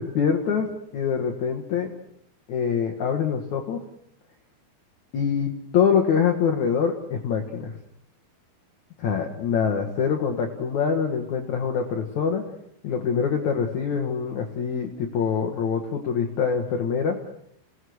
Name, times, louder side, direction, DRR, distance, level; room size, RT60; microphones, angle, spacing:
voice 1, 0.0-1.9 2.5-3.8 5.1-7.7 9.0-12.4 12.8-17.2, left 6 dB, 75° left, 3 dB, 1.7 m, -25 dB
28.5 x 18.0 x 6.4 m, 0.72 s
omnidirectional pair, 5.7 m